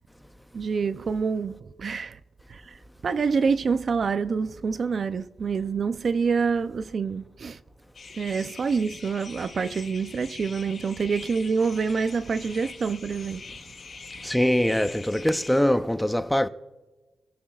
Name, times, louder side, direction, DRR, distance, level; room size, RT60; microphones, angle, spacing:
voice 1, 0.5-2.2 2.5-7.6 8.2-13.5, right 5 dB, 50° right, 0.5 m, -27 dB
sound 1, 7.9-15.6, left 4 dB, 55° left, 3.6 m, -44 dB
voice 2, 14.2-16.5, equal, 5° left, 0.7 m, -23 dB
25.5 x 15.0 x 2.4 m
cardioid pair, 85°, 0 cm